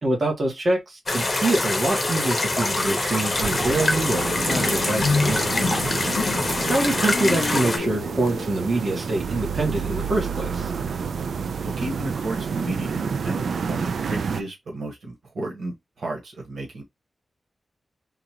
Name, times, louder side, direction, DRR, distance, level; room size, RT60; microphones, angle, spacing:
voice 1, 0.0-5.5 6.7-10.7, right 2 dB, 35° right, 1.4 m, -25 dB
sound 1, 1.1-7.8, left 2 dB, 25° left, 0.9 m, -25 dB
sound 2, 3.3-9.0, left 5 dB, 60° left, 0.3 m, -31 dB
sound 3, 3.4-14.4, right 6 dB, 75° right, 0.3 m, -29 dB
voice 2, 11.6-16.8, right 2 dB, 90° right, 1.3 m, -33 dB
3.8 x 2.4 x 2.9 m
wide cardioid pair, 175°, 0 cm